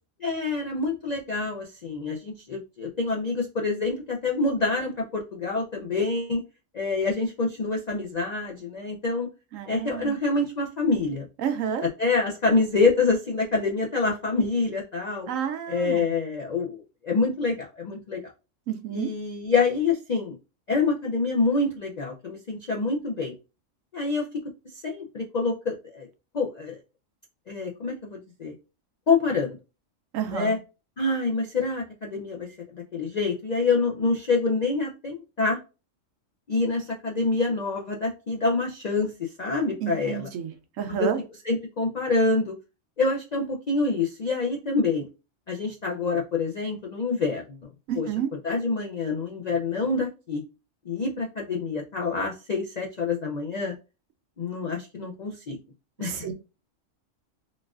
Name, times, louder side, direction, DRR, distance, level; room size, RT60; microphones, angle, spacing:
voice 1, 0.2-6.4 6.7-9.3 9.7-11.3 12.0-15.3 15.7-18.2 18.9-20.4 20.7-23.3 23.9-24.3 24.8-26.1 26.3-26.8 27.5-28.5 29.1-29.5 30.3-30.6 31.0-32.5 32.7-35.6 36.5-40.3 41.0-41.1 41.4-42.5 43.0-45.1 45.5-47.6 48.0-48.1 48.4-50.4 50.9-53.7 54.4-55.6 56.0-56.2, left 3 dB, 65° left, 0.4 m, -26 dB
voice 2, 9.5-10.1 11.4-11.8 15.3-16.1 18.7-19.1 30.1-30.6 39.8-40.5 40.8-41.2 47.9-48.3 56.0-56.3, right 8 dB, 80° right, 1.0 m, -30 dB
3.8 x 2.4 x 2.3 m
omnidirectional pair, 1.3 m